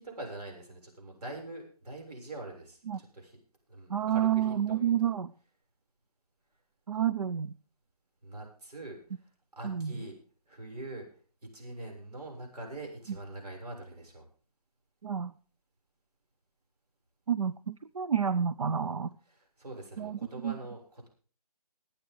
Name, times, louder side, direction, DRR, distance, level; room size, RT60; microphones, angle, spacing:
voice 1, 0.0-3.4 3.7-4.9 8.2-9.0 9.5-10.2 10.5-11.1 11.5-14.3 19.3-21.1, right 2 dB, 80° right, 1 dB, 7.0 m, -43 dB
voice 2, 3.9-5.3 6.9-7.5 9.6-9.9 15.0-15.3 17.3-19.1 20.0-20.5, right 9 dB, 60° right, 14 dB, 0.6 m, -29 dB
22.0 x 9.0 x 3.9 m, 0.41 s
hypercardioid pair, 170°, 20 cm